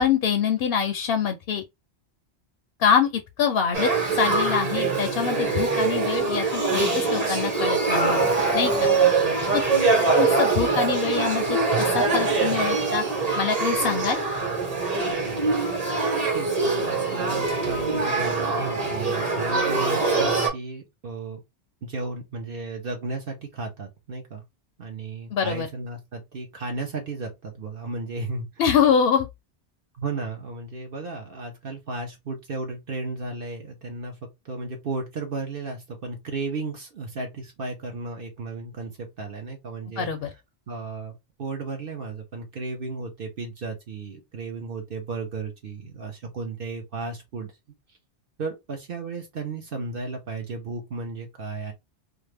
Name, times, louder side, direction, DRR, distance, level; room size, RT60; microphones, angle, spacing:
voice 1, 0.0-1.6 2.8-8.3 8.5-8.9 9.5-9.6 10.1-13.0 13.4-14.2 25.3-25.7 28.6-29.3 40.0-40.3, left 7 dB, 65° left, 0.7 m, -24 dB
Male speech man speaking / Child speech kid speaking / Conversation, 3.7-20.5, right 4 dB, 35° right, 1.2 m, -23 dB
voice 2, 16.3-21.4 21.8-24.4 24.8-28.5 30.0-40.1 40.7-47.5 48.4-51.7, right 3 dB, 55° right, 0.9 m, -34 dB
2.6 x 2.4 x 3.3 m
omnidirectional pair, 1.2 m